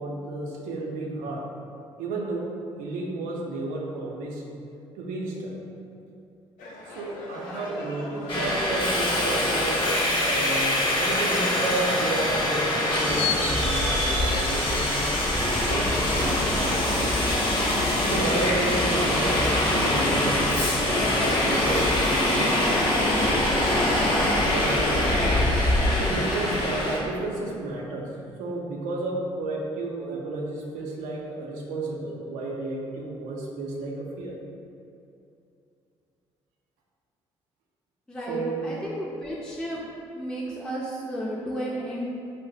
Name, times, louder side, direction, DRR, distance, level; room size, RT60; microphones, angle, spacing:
voice 1, 0.0-1.5 2.0-2.5 2.8-4.4 5.0-5.6 6.9-15.1 15.4-17.2 18.0-23.9 24.4-25.4 25.9-28.1 28.4-34.3 38.3-38.7, right 2 dB, 70° right, -1 dB, 0.5 m, -32 dB
sound 1, 6.6-12.0, left 1 dB, 70° left, 0.5 m, -39 dB
Subway metro underground, 8.3-27.0, left 1 dB, 35° left, 0.8 m, -23 dB
voice 2, 38.1-39.8 40.1-42.1, equal, 5° left, -5 dB, 0.5 m, -33 dB
2.6 x 2.0 x 3.8 m, 2.6 s
hypercardioid pair, 50°, 14 cm